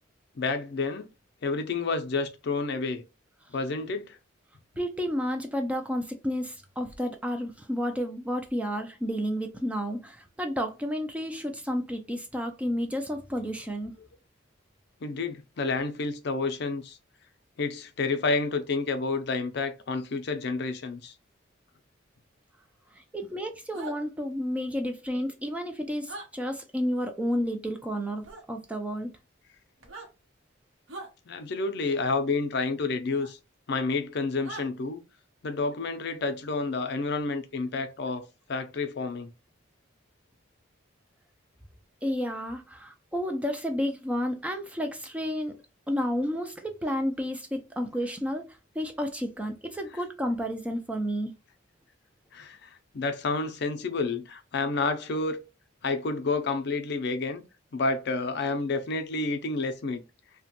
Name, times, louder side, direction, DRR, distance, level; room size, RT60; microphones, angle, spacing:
voice 1, 0.4-1.1 1.4-3.0 3.5-4.2 15.0-17.0 17.6-21.1 31.3-33.4 33.7-35.0 35.4-39.3 49.9-50.0 52.3-52.7 52.9-55.4 55.8-57.4 57.7-60.0, left 3 dB, 55° left, 0.4 m, -29 dB
voice 2, 4.8-14.0 22.9-29.1 42.0-45.6 45.9-51.3, equal, 5° right, 0.3 m, -31 dB
sound 1, 23.7-24.0 26.1-26.3 28.2-28.4 29.8-30.1 30.9-31.1 33.2-33.3 34.4-34.7, right 2 dB, 75° right, 0.9 m, -40 dB
2.9 x 2.1 x 2.8 m
head